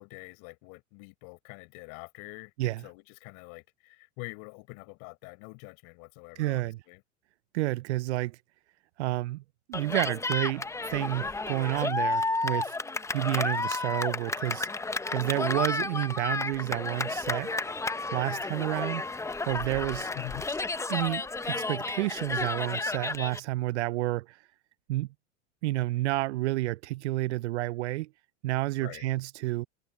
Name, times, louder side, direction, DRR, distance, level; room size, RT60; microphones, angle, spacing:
voice 1, 0.0-7.0 20.1-20.5 28.8-29.1, left 33 dB, 60° left, 5.2 m, -45 dB
voice 2, 6.4-6.8 7.5-8.4 9.0-9.4 9.7-12.8 13.1-14.7 15.1-17.5 18.1-19.0 19.5-20.1 20.9-24.4 24.9-25.1 25.6-28.1 28.4-29.7, right 18 dB, 75° right, 0.6 m, -30 dB
Cheering, 9.7-23.4, left 3 dB, 10° left, 0.8 m, -32 dB
hypercardioid pair, 100°, 34 cm